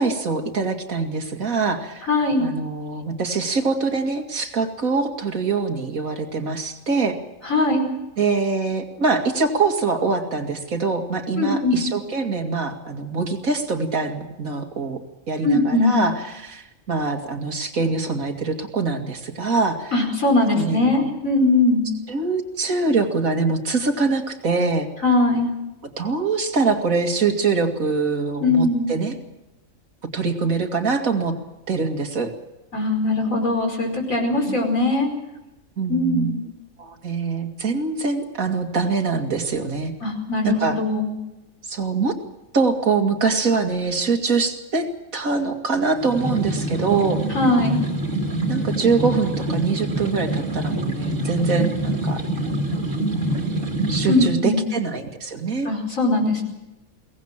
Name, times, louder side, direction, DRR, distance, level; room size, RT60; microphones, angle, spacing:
voice 1, 0.0-2.1 2.4-7.2 8.2-15.0 15.3-19.9 20.5-21.1 22.1-24.9 26.0-29.2 30.1-31.3 31.7-32.3 34.5-34.6 35.8-36.3 36.8-39.9 40.4-40.8 41.7-42.1 42.5-44.9 45.1-47.2 48.5-52.2 53.1-53.2 53.9-55.7, right 4 dB, 80° right, 4 dB, 2.7 m, -24 dB
voice 2, 2.1-2.5 7.5-7.9 11.4-11.8 15.4-16.0 19.9-21.9 25.0-25.5 28.4-28.9 32.7-35.1 35.9-36.4 40.0-41.1 47.3-47.8 54.1-54.6 55.7-56.4, left 2 dB, 70° left, 2 dB, 5.4 m, -20 dB
sound 1, 46.0-54.3, right 1 dB, 60° right, 2.9 m, -25 dB
23.0 x 18.5 x 7.4 m, 0.96 s
omnidirectional pair, 1.4 m